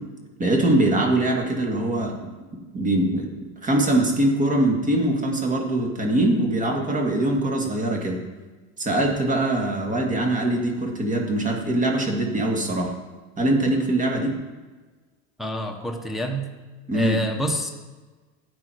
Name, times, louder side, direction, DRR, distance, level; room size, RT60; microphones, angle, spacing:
voice 1, 0.4-2.1 2.5-3.3 3.6-8.2 8.8-12.9 13.4-14.4 16.9-17.2, right 1 dB, 25° right, 1 dB, 2.3 m, -22 dB
voice 2, 15.4-16.5 16.9-17.7, equal, ahead, 1 dB, 1.2 m, -27 dB
12.0 x 9.0 x 4.7 m, 1.3 s
supercardioid pair, 120°, 32 cm